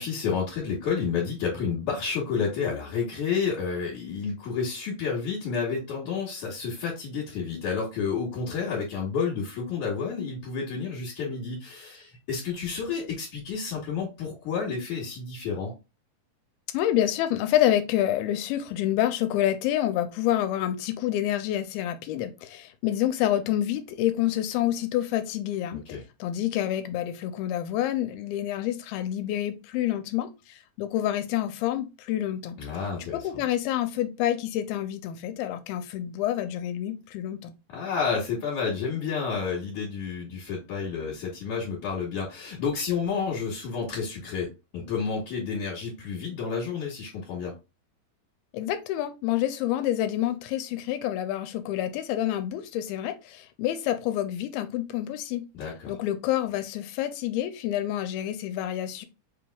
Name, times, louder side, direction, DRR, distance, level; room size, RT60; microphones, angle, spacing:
voice 1, 0.0-15.7 25.7-26.0 32.6-33.4 37.7-47.5 55.5-55.9, left 5 dB, 60° left, 2.6 m, -30 dB
voice 2, 16.7-25.8 26.2-32.6 33.1-37.5 48.5-55.4 55.9-59.1, left 12 dB, 85° left, 2.4 m, -28 dB
5.4 x 3.4 x 2.3 m
omnidirectional pair, 4.3 m